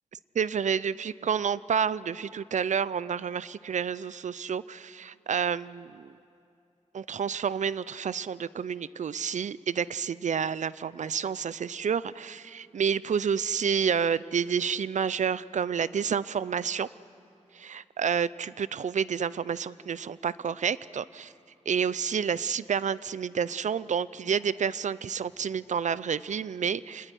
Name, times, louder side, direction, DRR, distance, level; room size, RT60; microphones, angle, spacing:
voice 1, 0.3-6.1 6.9-16.9 17.5-21.3 21.7-27.1, right 7 dB, 80° right, 18 dB, 0.5 m, -29 dB
26.0 x 19.0 x 9.9 m, 2.6 s
wide cardioid pair, 110°, 12 cm